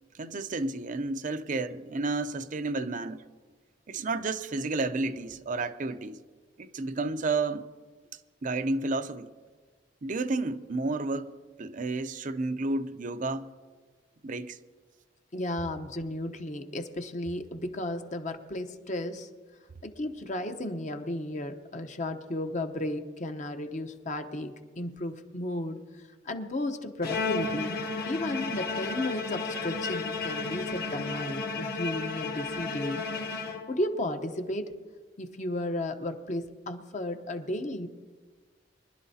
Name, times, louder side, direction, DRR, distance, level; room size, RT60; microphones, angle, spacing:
voice 1, 0.2-3.2 3.9-6.2 6.6-7.7 8.4-9.3 10.0-13.5 14.2-14.6, right 3 dB, 45° right, 0.5 m, -31 dB
voice 2, 15.3-19.3 19.8-33.0 33.7-34.7 35.2-37.9, left 1 dB, 40° left, 0.9 m, -34 dB
Bowed string instrument, 27.0-34.0, left 3 dB, 55° left, 1.6 m, -33 dB
24.0 x 11.5 x 2.8 m
head